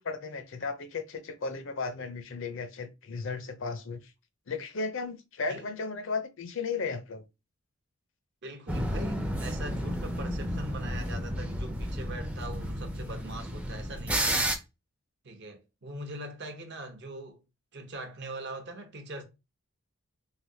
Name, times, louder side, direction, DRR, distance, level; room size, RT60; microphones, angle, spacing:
voice 1, 0.0-4.1 4.5-7.2, left 4 dB, 55° left, 0.5 m, -35 dB
voice 2, 8.4-14.3 15.2-17.4 17.7-19.2, right 1 dB, 50° right, 0.7 m, -41 dB
sound 1, 8.7-14.6, equal, 5° right, 0.4 m, -32 dB
3.3 x 2.6 x 2.7 m
head